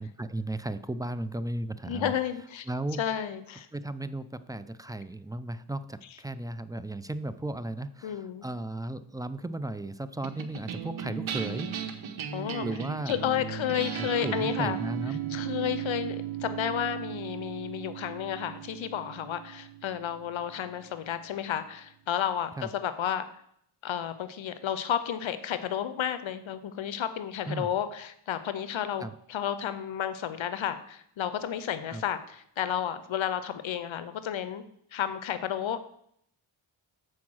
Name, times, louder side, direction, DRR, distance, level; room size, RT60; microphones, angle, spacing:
voice 1, 0.0-2.1 2.7-3.0 3.7-11.7 12.6-13.2 13.9-15.4 22.6-22.7 27.5-27.7 29.0-29.1 31.9-32.0, right 2 dB, 10° right, 13 dB, 0.3 m, -35 dB
voice 2, 1.9-2.7 3.0-3.7 8.0-8.4 12.3-12.7 13.1-14.8 15.3-23.3 23.8-34.6 34.9-35.9, left 9 dB, 70° left, 12 dB, 0.7 m, -32 dB
sound 1, 10.2-20.8, right 9 dB, 70° right, 1.0 m, -36 dB
7.2 x 4.8 x 6.2 m, 0.70 s
cardioid pair, 65°, 50 cm